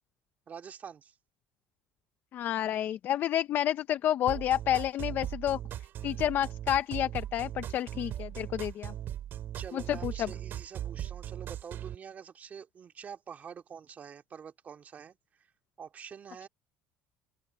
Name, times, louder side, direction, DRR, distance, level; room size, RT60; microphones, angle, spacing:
voice 1, 0.5-1.1 9.5-15.2 15.8-16.5, right 7 dB, 35° right, 2.6 m, -46 dB
voice 2, 2.3-5.6 6.0-8.9 9.7-10.3, left 11 dB, 50° left, 0.9 m, -30 dB
sound 1, 4.3-11.9, right 11 dB, 55° right, 3.5 m, -38 dB
open air
supercardioid pair, 105°, 4 cm